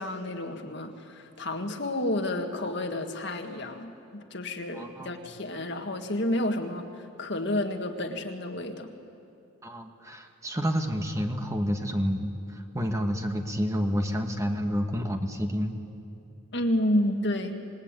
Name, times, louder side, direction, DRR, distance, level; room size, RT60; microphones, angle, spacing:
voice 1, 0.0-8.9 16.5-17.6, left 1 dB, 55° left, 5 dB, 1.8 m, -30 dB
voice 2, 4.7-5.2 9.6-15.8, equal, 15° right, 4 dB, 1.4 m, -29 dB
27.0 x 21.0 x 9.1 m, 2.6 s
head